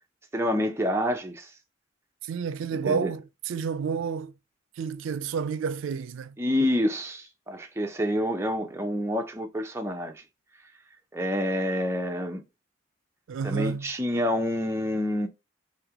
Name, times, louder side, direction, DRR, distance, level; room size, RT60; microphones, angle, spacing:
voice 1, 0.3-1.5 2.8-3.1 6.4-10.2 11.1-12.4 13.4-15.3, equal, 15° right, 0.5 m, -28 dB
voice 2, 2.2-4.3 4.8-6.4 13.3-13.9, right 6 dB, 85° right, 0.4 m, -30 dB
3.2 x 2.8 x 3.5 m
head